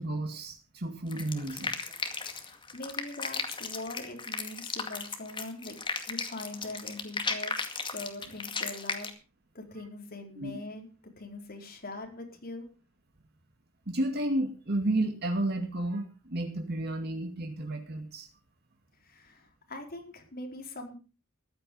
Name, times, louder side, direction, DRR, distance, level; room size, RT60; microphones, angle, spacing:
voice 1, 0.0-1.7 10.4-10.5 13.9-18.3, right 1 dB, 50° right, 3 dB, 2.3 m, -32 dB
sound 1, 1.1-9.1, left 4 dB, 25° left, 2.2 m, -35 dB
voice 2, 2.1-5.7 6.1-7.7 7.9-9.1 9.5-10.9 11.2-12.7 19.0-21.0, left 2 dB, 45° left, 3 dB, 4.4 m, -42 dB
15.0 x 12.0 x 5.4 m, 0.34 s
head